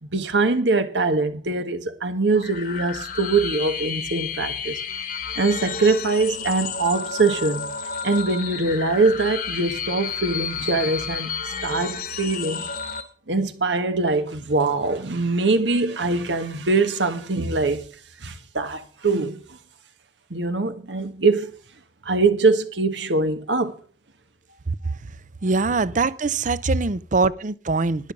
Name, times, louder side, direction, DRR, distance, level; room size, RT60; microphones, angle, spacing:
voice 1, 0.0-4.8 5.4-7.7 8.0-11.3 11.6-12.7 13.3-17.8 18.2-19.4 20.3-21.5 22.0-23.7, right 3 dB, 85° right, 1.5 m, -22 dB
sound 1, 2.3-13.0, left 6 dB, 50° left, 1.3 m, -31 dB
voice 2, 25.4-28.1, right 3 dB, 45° right, 0.6 m, -23 dB
12.0 x 10.5 x 5.3 m
head